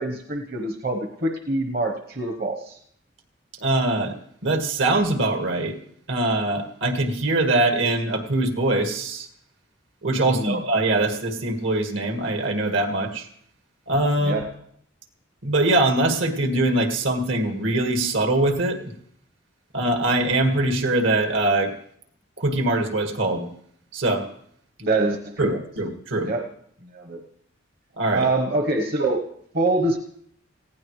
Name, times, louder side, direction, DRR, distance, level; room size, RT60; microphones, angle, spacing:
voice 1, 0.0-2.8 10.2-10.6 14.2-14.5 24.8-25.6 26.2-26.4 26.9-27.2 28.1-29.2 29.5-30.0, right 2 dB, 50° right, 5 dB, 1.1 m, -25 dB
voice 2, 3.6-4.1 4.4-5.8 6.1-9.3 10.0-13.3 13.9-14.4 15.4-18.8 19.7-21.7 22.4-23.5 23.9-24.2 25.4-26.3 28.0-28.3, right 2 dB, 75° right, 5 dB, 1.8 m, -22 dB
19.5 x 16.0 x 3.2 m, 0.67 s
head